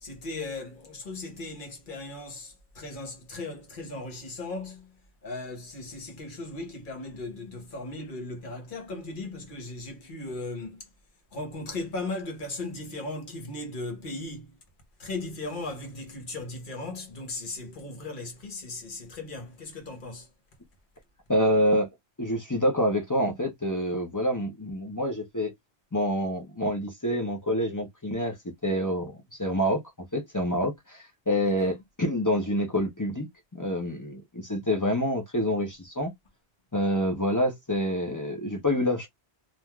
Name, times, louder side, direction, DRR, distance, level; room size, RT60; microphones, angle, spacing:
voice 1, 0.0-5.0 5.2-10.9 11.3-14.6 15.0-20.3 31.4-31.7, left 2 dB, 55° left, 1.1 m, -37 dB
voice 2, 21.3-21.9 22.2-25.5 25.9-28.3 28.6-33.3 33.5-36.1 36.7-39.1, equal, 20° left, 0.6 m, -27 dB
3.3 x 2.4 x 2.2 m
omnidirectional pair, 1.1 m